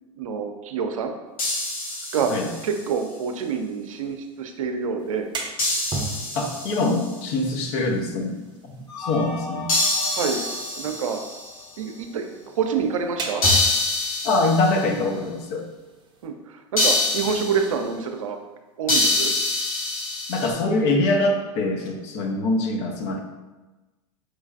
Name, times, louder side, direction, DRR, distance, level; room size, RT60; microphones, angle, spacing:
voice 1, 0.2-1.1 2.1-2.3 2.6-5.3 10.1-10.4 10.8-11.2 11.8-13.4 16.2-18.4 18.8-19.3, right 6 dB, 75° right, 5 dB, 0.5 m, -27 dB
sound 1, 1.4-2.8 5.6-7.1 9.7-11.6 13.4-14.9 16.8-17.7 18.9-20.5, left 2 dB, 85° left, 1.2 m, -25 dB
sound 2, 5.0-16.3, right 1 dB, 25° right, 0.6 m, -37 dB
voice 2, 6.3-8.4 8.6-9.7 14.2-15.6 20.3-23.2, left 2 dB, 55° left, 2 dB, 0.7 m, -24 dB
sound 3, 8.9-12.0, left 2 dB, 25° left, 0.9 m, -38 dB
4.5 x 3.2 x 2.4 m, 1.2 s
hypercardioid pair, 95°, 17 cm